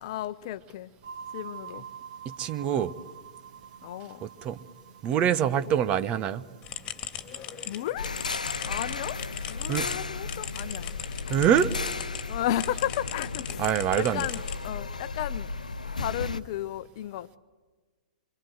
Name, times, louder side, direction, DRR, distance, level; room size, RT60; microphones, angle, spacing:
voice 1, 0.0-0.9 1.3-1.9 3.8-4.2 7.7-8.1 8.7-9.2 9.5-11.0 11.3-11.4 12.3-14.4 14.6-15.5 16.0-17.4, left 12 dB, 45° left, 15 dB, 0.9 m, -33 dB
sound 1, 1.0-9.2, right 7 dB, 55° right, 2.3 m, -47 dB
voice 2, 2.4-2.9 4.2-4.6 5.0-6.4 9.7-9.9 11.3-11.7 13.6-14.3, right 9 dB, 30° right, 12 dB, 1.1 m, -25 dB
sound 2, 6.6-12.2 12.6-14.9, left 10 dB, 25° left, 2.8 m, -39 dB
sound 3, 8.0-16.4, left 4 dB, 80° left, 0.8 m, -34 dB
26.5 x 25.0 x 8.1 m, 1.4 s
figure-of-eight pair, 105°, 4 cm